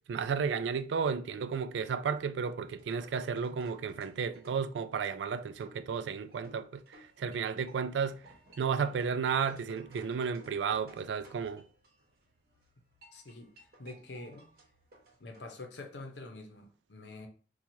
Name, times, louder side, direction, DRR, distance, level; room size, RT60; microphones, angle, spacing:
voice 1, 0.1-8.2 8.6-11.6, right 6 dB, 90° right, 0.3 m, -33 dB
sound 1, 2.5-15.4, right 1 dB, 55° right, 1.0 m, -59 dB
voice 2, 13.1-14.5 15.2-17.3, left 2 dB, 85° left, 0.7 m, -46 dB
4.4 x 2.3 x 2.7 m
head